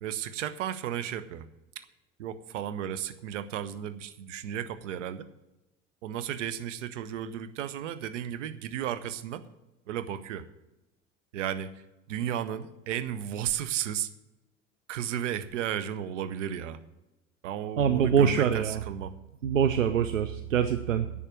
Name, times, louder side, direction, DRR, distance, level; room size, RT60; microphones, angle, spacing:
voice 1, 0.0-1.5 1.7-1.8 2.2-5.3 6.0-9.4 9.9-10.5 11.3-11.7 12.1-14.1 14.9-16.8 17.4-19.1, right 10 dB, 75° right, 14 dB, 1.0 m, -34 dB
voice 2, 17.8-18.8 19.4-21.3, right 8 dB, 90° right, 10 dB, 0.6 m, -24 dB
11.0 x 7.3 x 8.7 m, 0.98 s
hypercardioid pair, 70°, 37 cm